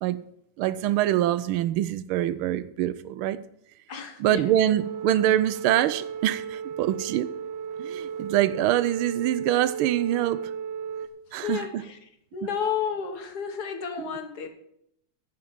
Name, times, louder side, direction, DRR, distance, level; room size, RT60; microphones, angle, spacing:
voice 1, 0.6-3.4 4.2-7.3 7.8-10.5 11.3-11.8 14.0-14.2, right 12 dB, 85° right, 1.5 m, -25 dB
voice 2, 3.9-4.5 11.4-12.0 12.3-14.5, left 7 dB, 55° left, 1.7 m, -31 dB
sound 1, 4.5-11.1, right 7 dB, 65° right, 1.5 m, -35 dB
10.5 x 5.8 x 8.7 m
omnidirectional pair, 2.3 m